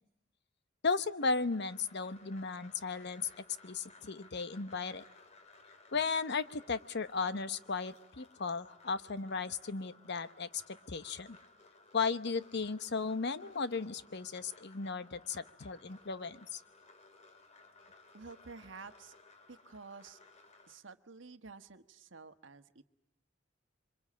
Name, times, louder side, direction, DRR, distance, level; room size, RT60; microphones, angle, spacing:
voice 1, 0.8-3.3 3.6-5.0 5.9-11.4 11.9-16.6, left 4 dB, 60° left, 13 dB, 1.0 m, -35 dB
sound 1, 1.2-20.8, left 3 dB, 35° left, 2.1 m, -60 dB
voice 2, 18.1-19.2 19.5-20.2 20.7-22.8, right 4 dB, 70° right, 9 dB, 1.3 m, -51 dB
28.0 x 24.5 x 8.6 m, 0.82 s
head